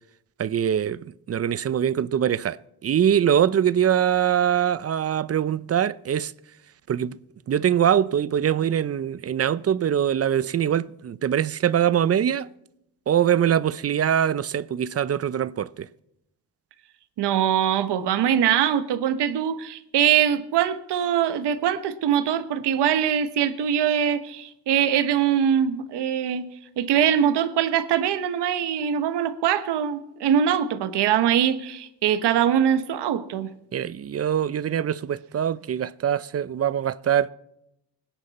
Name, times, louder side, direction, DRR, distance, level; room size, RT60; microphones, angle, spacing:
voice 1, 0.4-6.3 6.9-7.2 7.5-12.5 13.1-15.9 33.7-37.3, right 9 dB, 40° right, 0.5 m, -23 dB
voice 2, 17.2-26.4 26.8-33.5, right 9 dB, 85° right, 1.3 m, -22 dB
24.5 x 10.0 x 4.2 m
cardioid pair, 105°, 40 cm